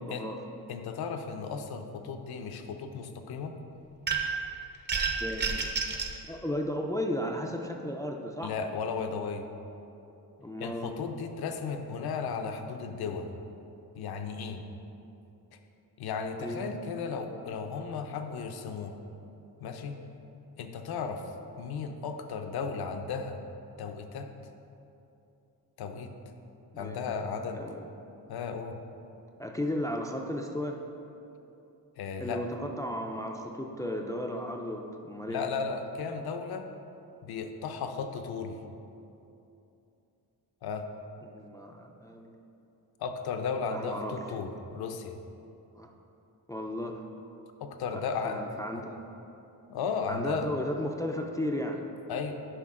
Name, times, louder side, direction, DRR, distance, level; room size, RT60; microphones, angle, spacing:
voice 1, 0.7-3.6 8.4-9.5 10.6-13.3 13.9-14.6 16.0-19.0 19.6-20.0 20.6-21.2 21.6-23.4 23.8-24.3 25.8-26.1 26.7-27.6 28.3-28.8 32.0-32.4 35.3-36.7 37.2-38.6 40.6-40.8 43.0-45.2 47.6-48.4 48.7-48.9 49.7-50.5 52.1-52.3, left 5 dB, 80° left, 6 dB, 0.7 m, -35 dB
sound 1, 4.1-4.5 4.9-6.2, right 5 dB, 30° right, 0.6 m, -30 dB
voice 2, 5.2-5.7 6.3-8.5 10.4-10.9 16.4-16.7 26.7-27.0 27.5-27.8 29.4-30.8 32.2-35.4 41.2-42.3 43.7-44.1 45.8-45.9 46.5-47.0 47.9-49.0 50.1-51.8, left 1 dB, 10° left, 1 dB, 0.3 m, -34 dB
10.0 x 5.2 x 3.7 m, 2.8 s
wide cardioid pair, 145°, 37 cm